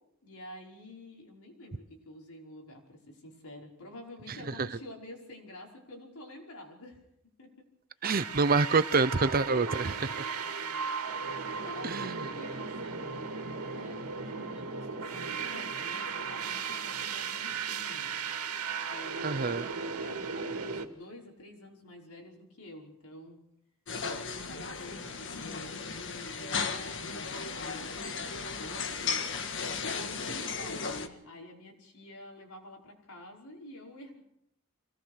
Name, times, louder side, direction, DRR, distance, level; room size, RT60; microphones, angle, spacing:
voice 1, 0.2-7.0 7.4-7.7 10.3-10.9 11.5-13.3 13.7-18.1 18.9-19.6 20.0-23.4 24.0-25.7 26.0-29.2 29.8-34.2, left 1 dB, 90° left, 0 dB, 5.4 m, -49 dB
voice 2, 8.0-10.1 11.8-12.3 19.2-19.7, right 4 dB, 40° right, 14 dB, 0.7 m, -27 dB
sound 1, 8.0-20.9, right 5 dB, 85° right, 2.2 m, -36 dB
sound 2, 23.9-31.1, left 5 dB, 55° left, 1.7 m, -35 dB
24.0 x 18.5 x 6.6 m, 0.79 s
head